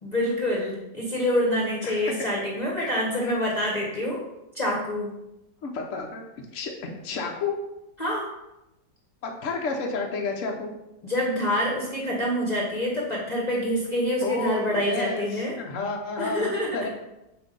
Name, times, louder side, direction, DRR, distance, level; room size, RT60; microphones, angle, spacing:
voice 1, 0.0-4.2 4.5-5.1 8.0-8.3 11.0-15.6 16.2-16.8, equal, 30° left, -4 dB, 0.9 m, -26 dB
voice 2, 1.8-2.2 2.8-2.9 3.2-3.3 5.6-6.2 6.5-7.5 9.2-10.7 14.2-16.9, left 4 dB, 60° left, 1 dB, 0.9 m, -31 dB
7.8 x 2.6 x 5.2 m, 0.92 s
omnidirectional pair, 2.0 m